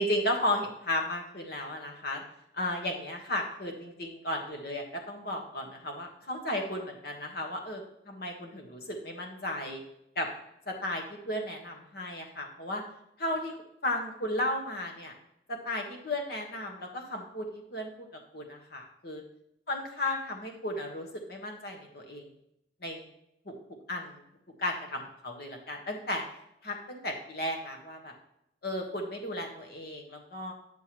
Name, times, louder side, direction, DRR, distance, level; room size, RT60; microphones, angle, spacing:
voice 1, 0.0-2.2 2.5-9.8 10.1-10.3 10.7-12.8 13.2-13.6 13.8-15.1 15.5-18.1 18.3-19.2 19.7-22.3 22.8-23.1 23.4-23.5 23.9-24.2 24.6-26.2 26.6-28.1 28.6-30.5, left 1 dB, 60° left, 2 dB, 1.4 m, -34 dB
9.9 x 6.8 x 3.1 m, 0.80 s
head